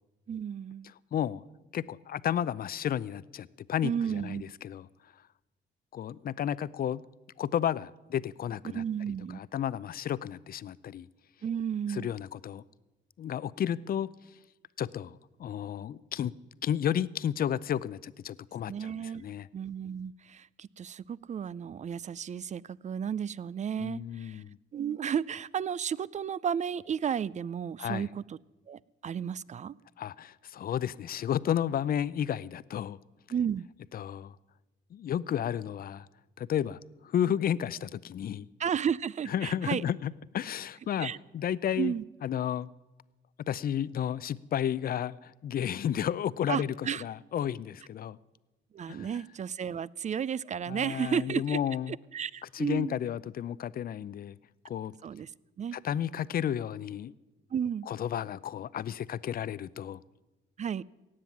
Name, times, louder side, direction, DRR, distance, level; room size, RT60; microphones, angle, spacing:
voice 1, 0.3-0.9 3.8-4.4 8.7-9.4 11.4-12.1 18.7-19.2 19.5-24.4 24.7-28.4 28.7-29.7 33.3-33.7 38.6-39.8 41.0-41.2 41.8-42.0 46.5-47.0 48.7-51.6 51.9-53.0 55.0-55.3 55.6-55.8 57.5-57.9 60.6-60.8, right 8 dB, 35° right, 22 dB, 0.4 m, -33 dB
voice 2, 1.1-1.4 1.7-4.9 5.9-7.0 7.4-8.8 9.3-11.1 11.9-12.6 13.2-14.1 14.8-16.3 16.6-19.5 23.8-24.6 27.8-28.1 30.0-33.0 33.9-34.4 34.9-36.1 36.4-38.5 39.3-41.9 42.2-42.7 43.5-48.2 48.9-49.1 50.7-51.9 52.5-54.4 54.6-54.9 55.7-57.1 57.9-60.0, left 10 dB, 50° left, 19 dB, 0.5 m, -32 dB
17.5 x 7.6 x 9.6 m, 1.1 s
cardioid pair, 90°, 20 cm